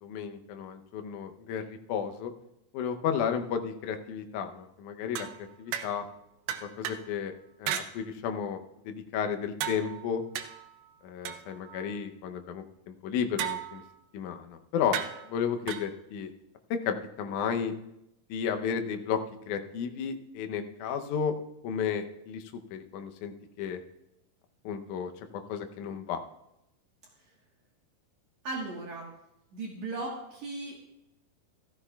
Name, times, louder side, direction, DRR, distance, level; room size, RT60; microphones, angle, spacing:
voice 1, 0.0-2.3 2.7-6.1 6.6-7.3 7.6-10.2 11.0-13.8 14.1-15.0 15.3-16.3 16.7-17.7 18.3-19.2 19.5-21.4 21.6-23.8 24.6-26.2, left 7 dB, 75° left, 6 dB, 1.8 m, -33 dB
sound 1, 5.1-6.1 6.5-7.1 7.7-7.9 9.6-12.0 13.4-14.0 14.9-15.9, right 10 dB, 80° right, 2.4 m, -36 dB
voice 2, 28.4-29.1 29.5-30.8, right 2 dB, 60° right, -2 dB, 2.4 m, -36 dB
14.5 x 14.5 x 2.3 m, 0.85 s
omnidirectional pair, 4.4 m